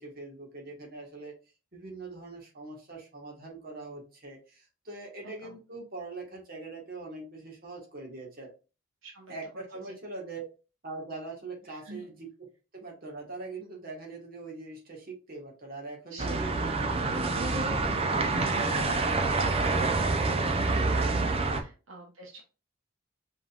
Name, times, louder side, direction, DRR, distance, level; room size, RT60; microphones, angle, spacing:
voice 1, 0.0-1.3 1.7-8.5 9.3-10.4 10.8-12.3 12.7-16.5 17.1-17.9 18.8-19.0 20.0-20.5 21.5-21.6, right 3 dB, 45° right, -1 dB, 1.7 m, -42 dB
voice 2, 5.2-5.6 9.0-9.9 11.6-12.1 16.1-16.4 16.8-19.1 19.6-22.4, right 2 dB, 65° right, -1 dB, 0.9 m, -44 dB
sound 1, 16.2-21.6, right 3 dB, 30° right, 0.6 m, -27 dB
5.4 x 3.6 x 2.5 m, 0.33 s
head